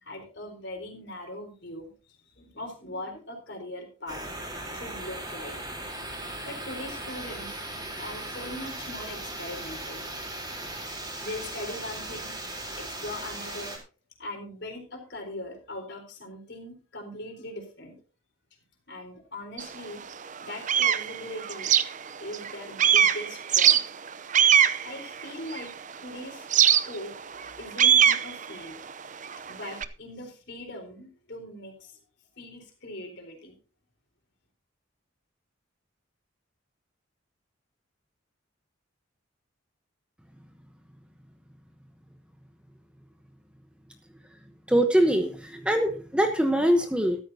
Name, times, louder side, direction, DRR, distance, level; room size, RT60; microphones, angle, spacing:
voice 1, 0.0-1.9 2.2-4.2 4.7-5.6 6.4-7.6 8.0-10.0 11.2-12.3 12.7-13.7 14.2-17.9 18.9-20.0 20.4-21.7 22.2-23.8 24.8-25.7 26.0-27.1 27.6-28.8 29.5-32.0 32.4-33.6, left 1 dB, 55° left, 3 dB, 4.1 m, -40 dB
sound 1, 4.1-13.8, right 1 dB, 20° right, 3.7 m, -38 dB
sound 2, 19.6-19.7 20.2-22.5 22.8-25.9 26.5-29.8, right 9 dB, 40° right, 0.6 m, -22 dB
voice 2, 44.7-47.2, right 1 dB, 5° right, 5 dB, 1.0 m, -23 dB
13.5 x 13.5 x 2.8 m, 0.35 s
head